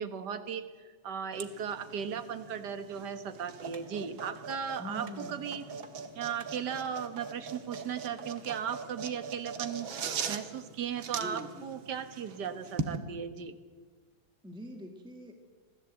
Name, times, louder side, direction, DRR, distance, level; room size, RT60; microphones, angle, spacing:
voice 1, 0.0-5.6 6.2-9.9 10.3-13.6, right 7 dB, 60° right, 9 dB, 1.9 m, -37 dB
sound 1, 1.3-13.0, right 5 dB, 80° right, 2.1 m, -41 dB
sound 2, 3.7-4.6 5.1-5.9 6.4-7.3 7.7-8.6 9.1-9.2, right 5 dB, 45° right, 1.7 m, -53 dB
voice 2, 4.8-5.6 11.1-11.7 14.4-15.3, equal, 5° right, 3 dB, 1.5 m, -43 dB
25.5 x 16.0 x 8.1 m, 1.5 s
omnidirectional pair, 2.2 m